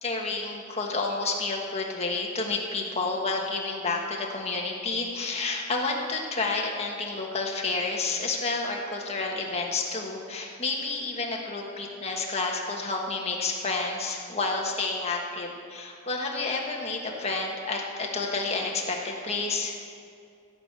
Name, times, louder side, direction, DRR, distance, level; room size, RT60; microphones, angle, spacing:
voice 1, 0.0-19.7, left 3 dB, 30° left, -1 dB, 1.5 m, -30 dB
15.0 x 6.3 x 8.3 m, 2.4 s
head